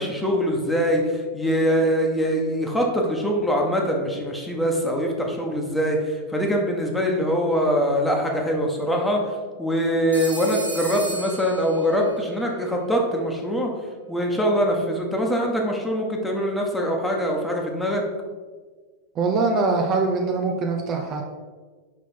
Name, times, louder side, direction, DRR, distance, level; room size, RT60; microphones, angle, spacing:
voice 1, 0.0-13.7 14.1-18.0, equal, 5° left, 0 dB, 1.3 m, -23 dB
Telephone, 10.1-12.2, right 3 dB, 80° right, 1.4 m, -34 dB
voice 2, 19.1-21.2, right 3 dB, 30° right, 2 dB, 0.7 m, -23 dB
5.9 x 5.6 x 4.4 m, 1.4 s
figure-of-eight pair, 90°, 0 cm